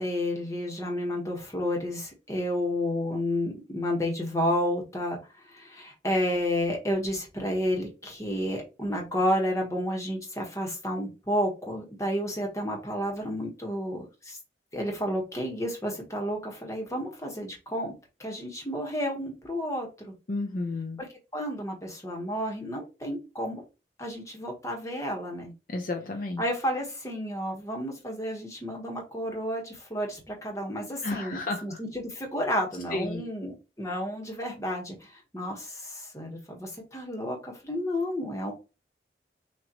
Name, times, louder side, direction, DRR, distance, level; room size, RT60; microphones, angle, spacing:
voice 1, 0.0-5.2 5.5-14.4 14.7-17.9 18.2-20.1 21.0-21.1 21.3-23.6 24.0-25.5 26.4-35.0 35.3-38.5, equal, 20° left, 1.4 m, -31 dB
voice 2, 20.3-21.0 25.7-26.4 31.0-31.8 32.9-33.2, left 2 dB, 50° left, 0.6 m, -32 dB
6.3 x 2.7 x 3.0 m
head